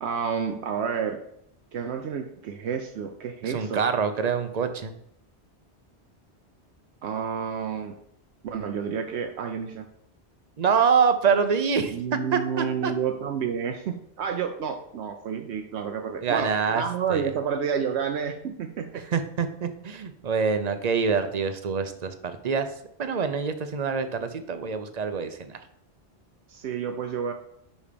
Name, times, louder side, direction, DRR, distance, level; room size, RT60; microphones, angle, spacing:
voice 1, 0.0-1.2 1.7-3.8 7.0-7.9 8.4-9.8 11.9-19.0 26.5-27.3, right 7 dB, 80° right, 5 dB, 0.9 m, -30 dB
voice 2, 3.4-4.9 10.6-12.0 12.3-12.9 16.2-16.8 17.1-17.3 19.0-22.1 22.4-22.7 23.0-25.6, right 6 dB, 45° right, 9 dB, 0.6 m, -25 dB
5.3 x 5.2 x 5.0 m, 0.70 s
omnidirectional pair, 1.1 m